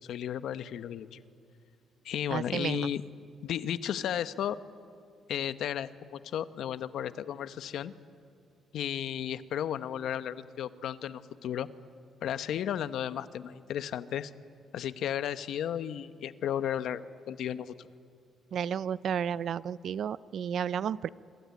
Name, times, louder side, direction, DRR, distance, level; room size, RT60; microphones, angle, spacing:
voice 1, 0.0-1.2 2.0-3.0 3.4-4.6 5.3-7.9 8.7-11.7 12.2-14.3 14.7-17.9, left 10 dB, 75° left, 13 dB, 1.0 m, -34 dB
voice 2, 2.3-2.9 18.5-21.1, right 8 dB, 65° right, 18 dB, 0.6 m, -32 dB
25.0 x 25.0 x 9.5 m, 2.4 s
cardioid pair, 90°, 0 cm